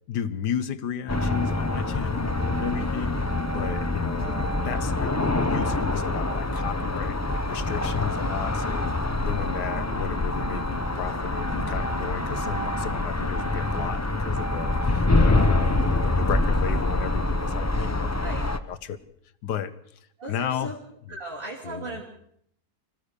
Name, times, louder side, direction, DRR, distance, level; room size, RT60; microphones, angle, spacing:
voice 1, 0.1-3.2 3.5-18.3 18.7-19.0 19.4-20.7 21.6-22.0, left 8 dB, 70° left, 14 dB, 1.6 m, -34 dB
sound 1, 1.1-18.6, left 2 dB, 15° left, 0.5 m, -25 dB
voice 2, 2.8-3.3 8.5-8.6 18.2-18.4 20.2-20.8 21.1-22.0, right 2 dB, 30° right, -2 dB, 2.9 m, -38 dB
25.5 x 15.5 x 6.7 m, 0.72 s
omnidirectional pair, 1.9 m